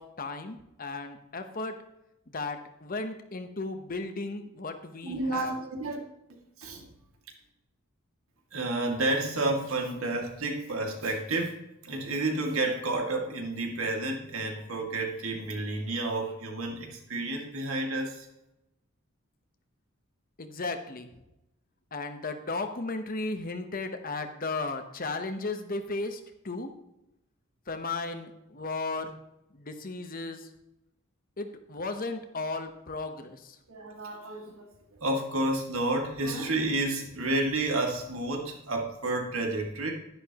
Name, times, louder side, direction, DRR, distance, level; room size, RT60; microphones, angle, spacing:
voice 1, 0.0-1.8 2.3-5.5 20.4-21.1 21.9-26.7 27.7-29.2 29.5-30.5 31.4-33.6, left 3 dB, 40° left, 7 dB, 1.0 m, -35 dB
voice 2, 5.0-6.0 6.3-6.9 8.5-18.3 33.7-39.9, right 2 dB, 75° right, 1 dB, 2.2 m, -31 dB
11.0 x 10.5 x 3.0 m, 0.88 s
head